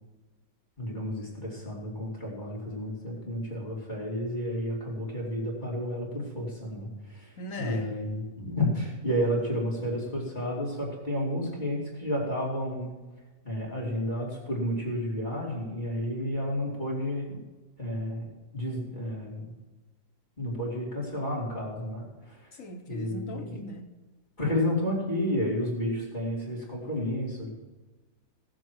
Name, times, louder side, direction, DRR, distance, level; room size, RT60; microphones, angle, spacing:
voice 1, 0.8-12.9 13.4-17.4 17.8-18.3 18.5-19.5 20.4-22.5 22.9-23.6 24.4-27.5, left 1 dB, 30° left, -5 dB, 3.1 m, -31 dB
voice 2, 7.4-7.9 22.5-23.9, left 1 dB, 60° left, 5 dB, 1.4 m, -39 dB
17.0 x 7.7 x 4.7 m, 1.2 s
omnidirectional pair, 1.6 m